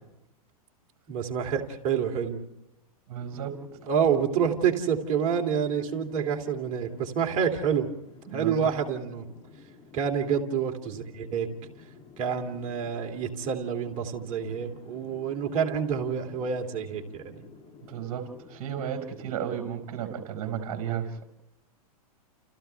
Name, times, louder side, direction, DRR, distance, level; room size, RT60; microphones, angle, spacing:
voice 1, 1.1-2.4 3.9-7.9 8.3-9.2 9.9-11.5 12.2-17.4, right 7 dB, 40° right, 3 dB, 2.8 m, -28 dB
voice 2, 3.1-3.6 8.3-8.7 17.9-21.3, right 8 dB, 55° right, 6 dB, 5.1 m, -33 dB
sound 1, 3.2-20.0, left 6 dB, 25° left, 2.9 m, -51 dB
29.5 x 29.5 x 3.4 m, 0.92 s
hypercardioid pair, 125°, 19 cm